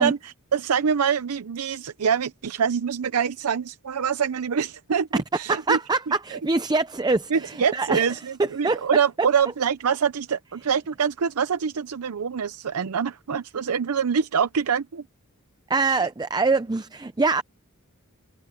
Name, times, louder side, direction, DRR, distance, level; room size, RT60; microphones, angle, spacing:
voice 1, 0.0-5.1 5.3-5.8 6.3-6.4 7.3-15.0 15.8-16.0, right 7 dB, 80° right, 0.6 m, -25 dB
voice 2, 5.5-8.0 8.4-8.8 15.7-17.4, right 3 dB, 20° right, 0.5 m, -24 dB
head